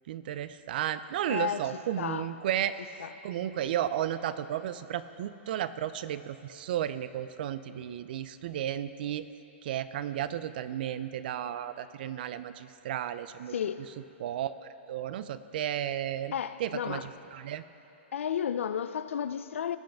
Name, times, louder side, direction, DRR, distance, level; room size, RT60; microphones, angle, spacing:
voice 1, 0.1-2.8 3.2-9.3 9.6-13.6 14.2-16.3 16.6-17.6, right 11 dB, 45° right, 0.4 m, -33 dB
voice 2, 1.3-1.7 2.0-2.3 3.0-3.1 13.5-13.9 16.3-17.1 18.1-19.8, left 8 dB, 90° left, 0.4 m, -32 dB
17.0 x 7.8 x 3.4 m
hypercardioid pair, 165°, 7 cm